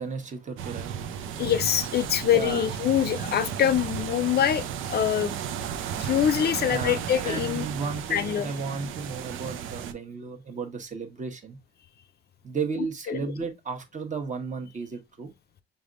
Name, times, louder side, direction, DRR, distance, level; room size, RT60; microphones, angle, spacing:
voice 1, 0.0-1.4 2.3-2.7 6.7-11.6 12.4-15.3, right 4 dB, 40° right, 1.1 m, -34 dB
sound 1, 0.6-9.9, right 8 dB, 90° right, 0.5 m, -34 dB
voice 2, 1.4-5.4 6.0-7.7 8.1-8.5 13.1-13.2, left 10 dB, 55° left, 0.5 m, -24 dB
5.2 x 3.4 x 2.5 m
cardioid pair, 90°, 20 cm